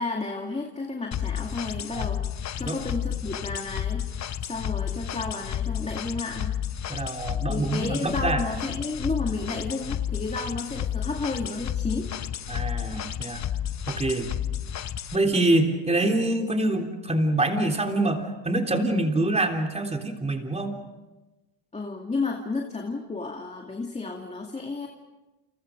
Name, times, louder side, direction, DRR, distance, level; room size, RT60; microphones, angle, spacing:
voice 1, 0.0-2.2 2.6-4.1 4.4-6.5 7.5-12.1 21.7-24.9, left 3 dB, 15° left, 2 dB, 2.4 m, -32 dB
sound 1, 1.1-15.2, left 10 dB, 35° left, 0.9 m, -31 dB
voice 2, 6.9-8.4 12.5-13.4 13.9-14.3 15.1-20.7, right 2 dB, 15° right, 3 dB, 3.5 m, -25 dB
29.5 x 29.0 x 5.2 m, 1.1 s
cardioid pair, 135°, 46 cm